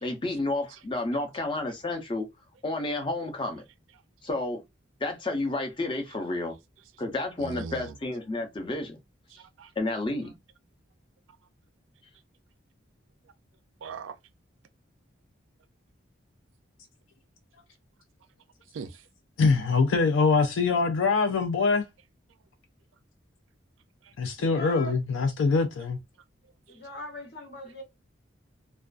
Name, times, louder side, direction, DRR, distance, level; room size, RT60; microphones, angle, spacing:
voice 1, 0.0-2.2 2.6-3.6 4.2-4.6 5.0-6.6 7.0-9.0 9.8-10.3, left 2 dB, 25° left, 0.5 m, -31 dB
voice 2, 7.4-8.0 9.3-9.7 13.8-14.2 18.7-19.0 24.0-24.1, right 5 dB, 85° right, 0.4 m, -40 dB
voice 3, 19.4-21.8 24.2-26.0, left 4 dB, 85° left, 0.4 m, -23 dB
voice 4, 24.4-25.0 26.7-27.8, left 1 dB, 55° left, 0.8 m, -40 dB
2.4 x 2.2 x 2.4 m
head